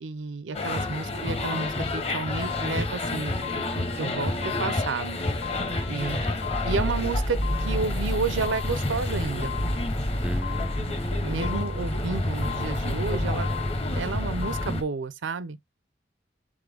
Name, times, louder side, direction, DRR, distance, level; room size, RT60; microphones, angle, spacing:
voice 1, 0.0-5.2 5.9-6.3 6.6-9.5 10.8-10.9 11.2-13.5 13.9-15.6, right 4 dB, 85° right, 0.6 m, -31 dB
sound 1, 0.5-14.8, left 1 dB, 35° left, 0.8 m, -28 dB
sound 2, 0.8-1.0 1.4-2.0 2.4-3.0 3.4-4.0 4.4-5.0 5.4-6.0 6.4-7.0 7.4-8.0 8.4-9.0 9.4-10.0 10.4-11.0 11.4-12.0 12.4-13.0 13.4-14.0 14.4-14.7, left 11 dB, 60° left, 0.4 m, -39 dB
voice 2, 5.6-6.4 10.2-11.6, right 1 dB, 5° right, 0.4 m, -39 dB
3.7 x 3.7 x 3.4 m
head